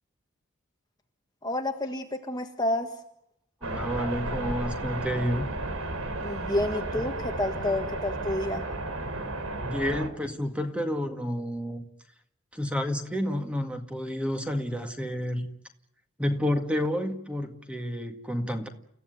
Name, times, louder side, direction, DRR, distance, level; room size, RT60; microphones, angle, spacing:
voice 1, 1.4-2.9 6.2-8.7, left 1 dB, 20° left, 5 dB, 1.5 m, -29 dB
voice 2, 3.6-5.5 7.0-7.1 9.6-11.8 12.5-15.5 16.2-18.7, equal, 5° right, 5 dB, 2.0 m, -30 dB
sound 1, 3.6-10.1, right 2 dB, 85° right, 3.7 m, -33 dB
29.5 x 15.5 x 9.5 m, 0.73 s
head